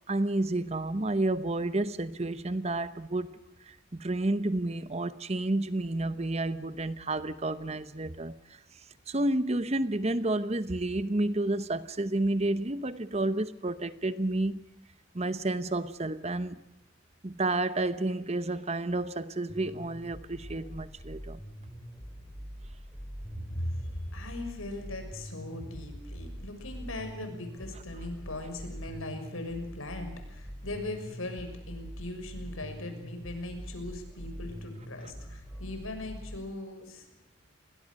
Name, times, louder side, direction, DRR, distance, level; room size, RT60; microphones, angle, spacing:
voice 1, 0.1-8.8 9.1-14.7 15.1-16.6 17.2-21.4, right 2 dB, 30° right, 0.9 m, -30 dB
sound 1, 19.5-36.4, equal, ahead, 2.8 m, -44 dB
voice 2, 23.5-37.1, left 2 dB, 85° left, 6.4 m, -39 dB
29.5 x 21.5 x 6.5 m
head